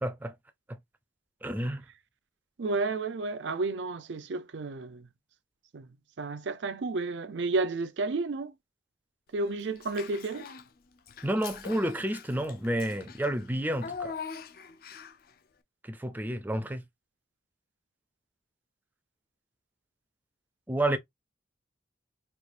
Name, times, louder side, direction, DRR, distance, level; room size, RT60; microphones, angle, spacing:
voice 1, 0.0-0.3 0.7-0.8 1.4-1.8 11.2-14.2 15.8-16.8 20.7-21.0, right 1 dB, 10° right, 0.4 m, -30 dB
voice 2, 2.6-5.1 5.7-5.9 6.2-8.5 9.3-10.5, right 3 dB, 80° right, 0.5 m, -31 dB
Child speech kid speaking / Bathtub (filling or washing), 9.8-10.7 11.1-15.3, left 6 dB, 55° left, 0.4 m, -42 dB
4.5 x 2.4 x 2.5 m
head